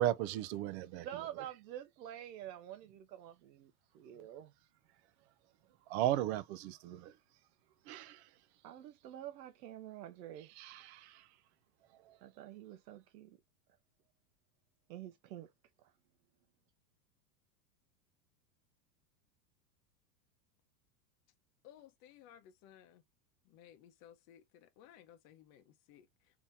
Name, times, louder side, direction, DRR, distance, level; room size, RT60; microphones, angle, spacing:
voice 1, 0.0-1.4 5.9-7.1 7.9-8.2 10.5-11.2 12.1-12.2, right 13 dB, 45° right, 0.4 m, -36 dB
voice 2, 1.0-4.5 8.6-10.5 12.2-13.4 14.9-15.5, right 12 dB, 80° right, 0.7 m, -48 dB
voice 3, 21.6-23.0 23.5-26.1, left 10 dB, 40° left, 0.8 m, -59 dB
3.5 x 2.9 x 2.6 m
supercardioid pair, 135°, 50 cm